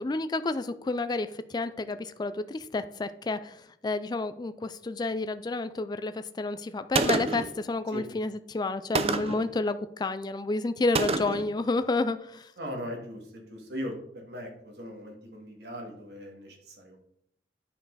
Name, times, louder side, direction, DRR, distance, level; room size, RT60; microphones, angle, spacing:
voice 1, 0.0-12.5, left 3 dB, 25° left, 12 dB, 0.3 m, -30 dB
Gunshot gunfire, 6.9-7.5 9.0-9.5 11.0-11.5, right 3 dB, 35° right, 0.5 m, -27 dB
voice 2, 12.6-17.0, equal, 65° right, 1 dB, 2.2 m, -39 dB
9.5 x 5.4 x 4.0 m, 0.71 s
head